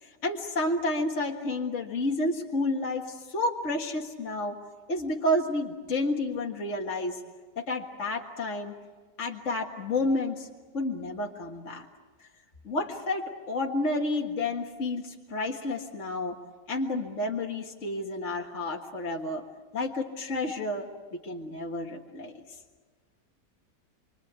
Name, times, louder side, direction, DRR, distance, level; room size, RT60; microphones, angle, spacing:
voice 1, 0.0-4.6 4.9-7.2 7.6-8.7 9.2-10.5 10.7-11.9 12.6-16.4 16.7-19.4 19.7-22.3, left 2 dB, 50° left, 0 dB, 2.1 m, -30 dB
27.5 x 24.5 x 8.2 m, 1.4 s
omnidirectional pair, 1.7 m